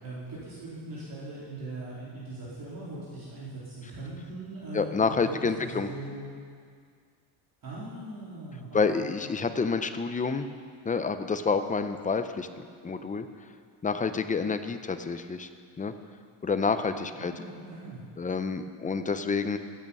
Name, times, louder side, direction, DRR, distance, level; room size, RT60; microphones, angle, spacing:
voice 1, 0.0-6.3 7.6-9.1 9.4-9.5 17.1-18.0, right 2 dB, 45° right, -8 dB, 3.3 m, -40 dB
voice 2, 4.7-5.9 8.7-10.5 10.9-13.3 13.8-15.5 15.8-15.9 16.4-17.3 18.2-19.6, left 4 dB, 15° left, 9 dB, 0.5 m, -28 dB
15.5 x 8.7 x 5.4 m, 2.1 s
cardioid pair, 130°, 47 cm